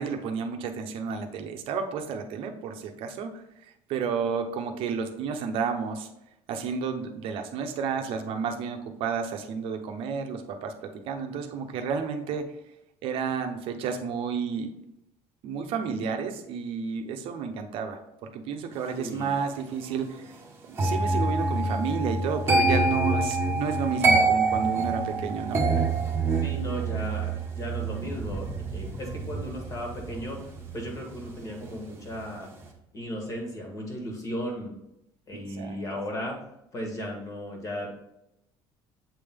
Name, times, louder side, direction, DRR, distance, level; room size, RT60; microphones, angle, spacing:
voice 1, 0.0-6.1 6.5-12.5 13.0-14.7 15.4-20.3 20.6-25.6 35.5-36.0, right 6 dB, 65° right, 6 dB, 0.8 m, -31 dB
voice 2, 19.0-19.3 26.4-28.5 28.7-30.5 30.7-32.5 32.9-34.7 35.3-36.4 36.7-37.9, equal, 35° left, 1 dB, 1.6 m, -35 dB
Piano Keys, 20.8-31.7 32.0-32.4, right 3 dB, 25° right, 1.0 m, -27 dB
sound 1, 28.0-32.8, equal, ahead, 0.5 m, -41 dB
7.6 x 3.4 x 3.6 m, 0.84 s
cardioid pair, 145°, 10 cm